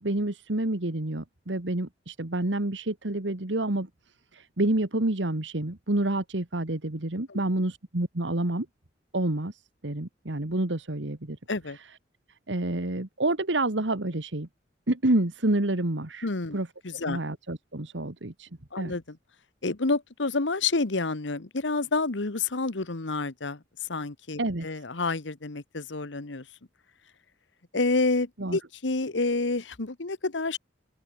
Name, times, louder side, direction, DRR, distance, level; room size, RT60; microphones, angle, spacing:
voice 1, 0.0-3.9 4.3-8.7 9.1-11.4 12.5-14.5 14.9-16.3 16.5-16.7 17.0-18.5 18.8-18.9 24.4-24.7 28.4-28.6, right 1 dB, 80° right, 1.9 m, -28 dB
voice 2, 16.2-16.6 16.8-17.2 18.7-19.2 19.6-23.6 23.9-26.4 27.7-30.6, left 3 dB, 80° left, 1.3 m, -29 dB
open air
head